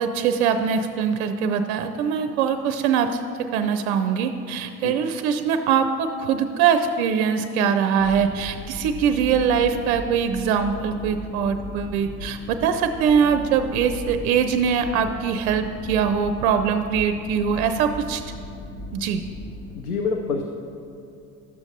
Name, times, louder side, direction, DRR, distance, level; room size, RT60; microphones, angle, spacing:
voice 1, 0.0-18.2 18.9-19.2, right 7 dB, 50° right, 8 dB, 0.5 m, -22 dB
sound 1, 8.0-19.8, left 1 dB, 30° left, 0.5 m, -37 dB
voice 2, 19.8-20.4, left 4 dB, 80° left, 3 dB, 0.6 m, -26 dB
12.0 x 6.9 x 2.7 m, 2.7 s
figure-of-eight pair, 65°, 43 cm